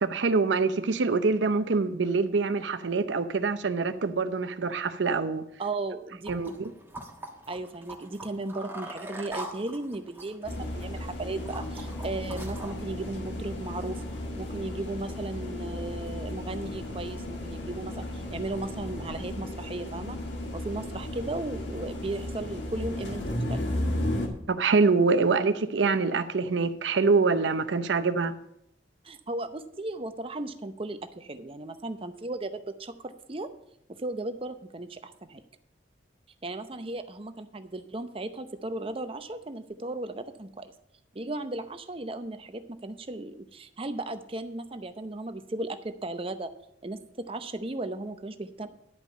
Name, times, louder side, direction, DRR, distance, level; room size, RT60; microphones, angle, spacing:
voice 1, 0.0-5.4 6.3-6.7 24.5-28.3, right 4 dB, 75° right, 0.6 m, -25 dB
voice 2, 5.6-6.6 7.5-14.0 14.4-20.2 20.5-23.6 29.0-33.5 33.9-35.4 36.4-40.7 41.1-46.5 46.8-48.7, right 2 dB, 30° right, 0.7 m, -36 dB
sound 1, 6.2-12.7, right 1 dB, 10° right, 1.4 m, -43 dB
sound 2, 10.4-24.3, left 1 dB, 75° left, 2.0 m, -34 dB
11.0 x 5.2 x 7.2 m
head